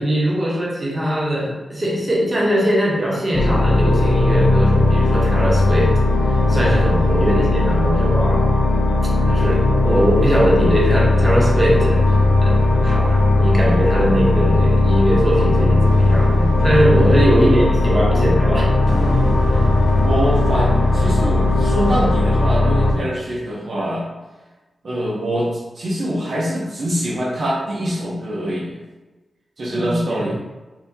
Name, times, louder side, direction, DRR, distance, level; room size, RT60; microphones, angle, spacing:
voice 1, 0.0-8.5 9.2-18.7 19.5-19.7 29.6-30.3, equal, 20° right, -5 dB, 0.9 m, -21 dB
sound 1, 3.3-22.9, left 2 dB, 45° left, 0.4 m, -17 dB
sound 2, 15.8-22.2, left 1 dB, 30° left, 0.8 m, -29 dB
voice 2, 17.3-17.8 20.0-24.1 24.8-28.8 29.6-30.4, equal, 55° right, -5 dB, 0.7 m, -24 dB
2.7 x 2.7 x 3.5 m, 1.2 s
wide cardioid pair, 135°, 0 cm